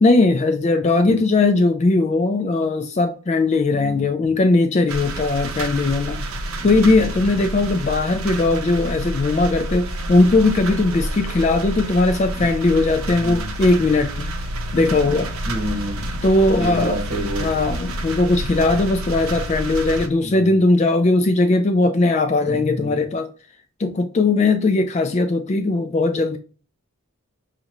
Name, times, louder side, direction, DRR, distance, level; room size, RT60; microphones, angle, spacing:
voice 1, 0.0-6.2 6.6-14.3 14.7-15.3 16.2-17.0 17.4-23.3 23.8-26.4, left 2 dB, 30° left, 0.3 m, -19 dB
voice 2, 3.7-4.0 6.6-7.0 12.3-12.4 13.2-13.5 15.4-16.2 16.5-17.6 20.2-20.5 22.5-22.9, equal, 35° right, 1.6 m, -29 dB
sound 1, 4.9-20.1, right 1 dB, 75° right, 0.7 m, -29 dB
5.2 x 2.5 x 2.9 m
head